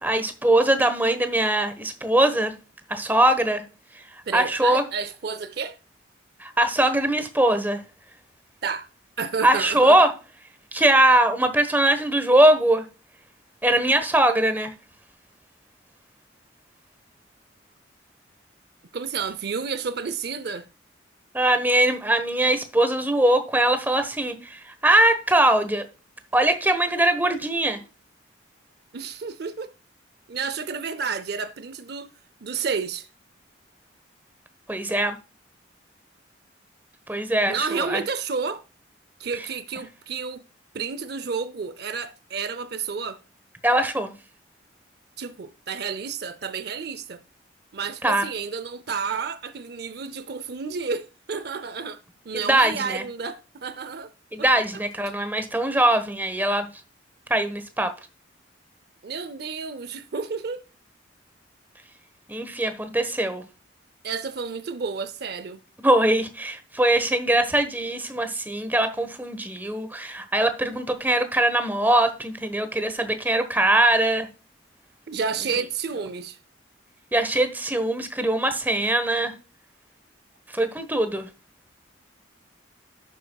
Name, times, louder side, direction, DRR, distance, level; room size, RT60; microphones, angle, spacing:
voice 1, 0.0-2.5 2.9-3.6 4.3-4.8 6.4-7.8 9.4-10.1 10.7-12.8 13.6-14.7 21.3-25.8 26.3-27.8 34.7-35.1 37.1-38.0 43.6-44.1 48.0-48.2 52.3-53.0 54.3-56.7 57.3-57.9 62.3-63.4 65.8-74.3 77.1-79.3 80.5-81.3, right 1 dB, 10° right, 1.1 m, -21 dB
voice 2, 4.3-5.8 8.6-8.9 9.2-10.1 18.9-20.7 28.9-29.7 30.3-32.1 32.4-33.1 37.5-38.6 39.2-40.4 40.7-43.2 45.2-47.2 47.7-54.1 54.4-54.5 54.7-55.1 59.0-60.6 64.0-65.6 75.1-76.4, right 5 dB, 55° right, 0.5 m, -31 dB
11.0 x 8.1 x 2.3 m
head